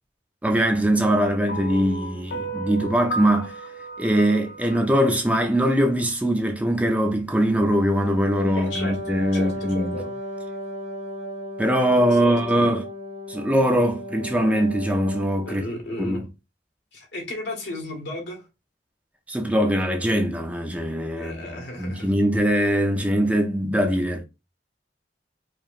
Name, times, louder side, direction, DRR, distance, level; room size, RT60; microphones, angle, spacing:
voice 1, 0.4-3.5 4.0-10.0 11.6-12.8 13.3-15.6 16.0-16.3 19.3-24.2, equal, 10° right, 0.5 m, -22 dB
sound 1, 1.5-5.8, right 3 dB, 60° left, 0.5 m, -34 dB
Wind instrument woodwind instrument, 7.5-15.7, left 1 dB, 35° right, 0.8 m, -35 dB
voice 2, 8.5-9.0 9.3-10.1 12.2-12.7 15.5-16.2 16.9-18.4 21.2-22.1, left 1 dB, 80° left, 1.6 m, -34 dB
4.7 x 3.0 x 2.4 m
head